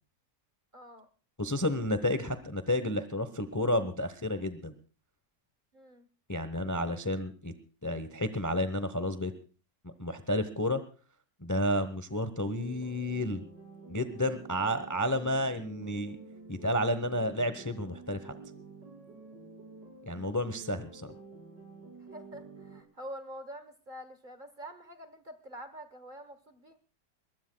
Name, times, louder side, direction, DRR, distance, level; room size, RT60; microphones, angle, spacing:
voice 1, 0.7-1.1 5.7-6.1 22.0-26.8, equal, 35° right, 10 dB, 1.1 m, -46 dB
voice 2, 1.4-4.7 6.3-7.5 7.8-9.3 9.8-10.8 11.4-13.4 13.9-16.2 16.5-18.3 20.1-21.1, left 1 dB, 15° left, 11 dB, 0.7 m, -31 dB
sound 1, 12.4-22.8, right 3 dB, 90° right, 3.4 m, -50 dB
22.5 x 21.0 x 2.3 m, 0.36 s
omnidirectional pair, 1.8 m